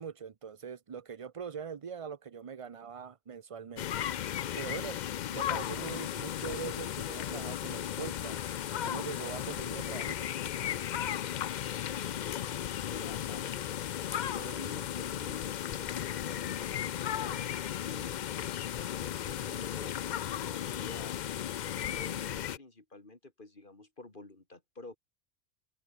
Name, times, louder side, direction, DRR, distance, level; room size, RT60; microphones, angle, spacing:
voice 1, 0.0-4.0 4.6-5.0 5.3-8.4 8.8-10.3, right 6 dB, 40° right, 0.5 m, -42 dB
sound 1, 3.8-22.6, left 10 dB, 60° left, 0.5 m, -35 dB
sound 2, 5.6-22.3, left 9 dB, 85° left, 1.3 m, -49 dB
voice 2, 12.0-13.9 14.2-18.2 18.7-21.2 21.9-25.0, left 2 dB, 45° left, 3.4 m, -50 dB
open air
omnidirectional pair, 1.2 m